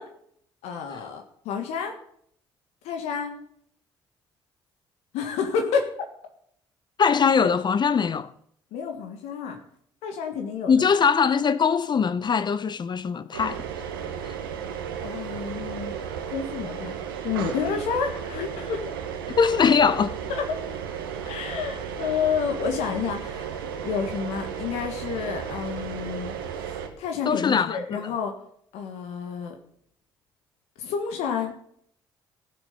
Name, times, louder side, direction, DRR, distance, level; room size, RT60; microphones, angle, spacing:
voice 1, 0.6-1.9 2.8-3.3 5.1-5.9 8.7-9.6 10.0-10.7 15.0-15.9 16.3-17.0 17.2-18.9 20.3-20.6 21.2-23.6 23.8-26.3 26.6-28.3 28.7-29.5 30.8-31.5, left 6 dB, 70° left, 1.6 m, -29 dB
voice 2, 7.0-8.3 10.7-13.6 14.2-14.3 19.4-20.2 27.3-28.1, left 6 dB, 40° left, 0.8 m, -22 dB
sound 1, 13.3-26.9, right 8 dB, 85° right, 1.4 m, -34 dB
15.5 x 7.0 x 6.9 m
hypercardioid pair, 50°, 11 cm